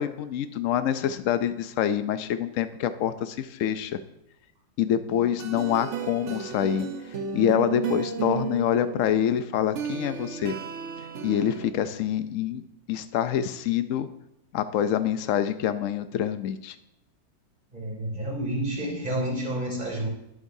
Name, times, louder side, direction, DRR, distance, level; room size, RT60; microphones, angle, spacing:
voice 1, 0.0-4.0 4.8-6.9 7.3-10.5 11.2-12.6 12.9-14.1 14.5-16.8, left 10 dB, 80° left, 11 dB, 0.7 m, -26 dB
sound 1, 5.1-11.7, right 6 dB, 55° right, 0.9 m, -34 dB
voice 2, 17.7-20.1, right 1 dB, 25° right, -1 dB, 3.2 m, -29 dB
20.0 x 7.8 x 2.7 m, 0.85 s
omnidirectional pair, 2.1 m